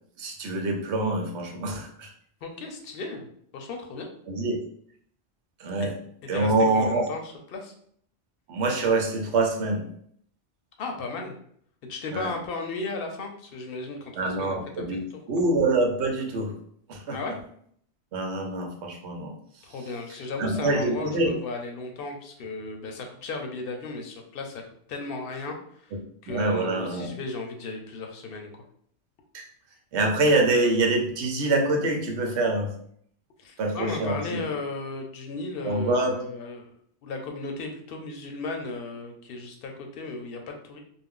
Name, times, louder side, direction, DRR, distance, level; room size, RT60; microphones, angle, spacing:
voice 1, 0.2-2.1 4.3-4.6 5.6-5.9 6.3-7.0 8.5-9.9 12.1-12.3 14.2-16.6 16.9-17.2 18.1-19.3 20.4-21.3 26.3-27.1 29.3-29.5 29.9-32.7 33.6-34.5 35.6-36.2, right 2 dB, 80° right, 2 dB, 0.9 m, -25 dB
voice 2, 2.4-3.3 3.5-4.1 5.8-5.9 6.3-7.2 7.5-7.7 10.8-11.4 11.9-14.6 14.9-15.0 17.1-17.4 19.6-24.6 24.9-25.9 26.2-28.5 33.4-36.7 37.0-40.8, left 3 dB, 65° left, 3 dB, 0.7 m, -35 dB
2.4 x 2.0 x 3.5 m, 0.64 s
omnidirectional pair, 1.1 m